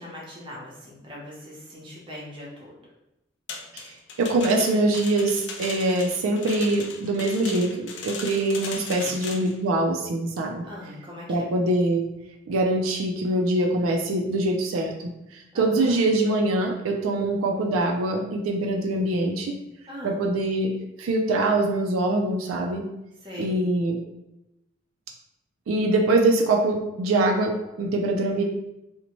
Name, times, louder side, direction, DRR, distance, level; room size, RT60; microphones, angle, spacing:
voice 1, 0.0-2.8 8.8-9.2 10.6-11.4 15.5-16.0 19.9-20.2 23.2-23.6, left 1 dB, 25° right, -5 dB, 0.6 m, -40 dB
sound 1, 3.5-9.6, left 5 dB, 55° left, 0.4 m, -38 dB
voice 2, 4.2-10.7 11.3-12.1 12.5-19.5 20.0-20.7 21.0-22.8 23.4-24.0 25.7-28.4, right 2 dB, 90° right, 2 dB, 0.4 m, -24 dB
2.6 x 2.1 x 2.9 m, 0.90 s
head